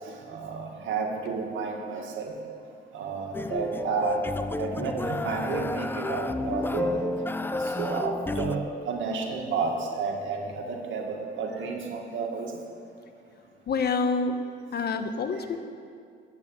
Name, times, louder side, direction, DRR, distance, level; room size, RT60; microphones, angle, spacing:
voice 1, 0.0-2.4 2.9-4.2 4.6-7.0 7.5-12.5 15.4-15.5, right 4 dB, 75° right, 1 dB, 2.1 m, -31 dB
sound 1, 3.3-8.6, left 2 dB, 10° left, 0.5 m, -31 dB
voice 2, 13.7-14.4 14.7-15.6, left 4 dB, 55° left, 7 dB, 1.1 m, -27 dB
10.5 x 8.6 x 8.6 m, 2.4 s
cardioid pair, 90°, 20 cm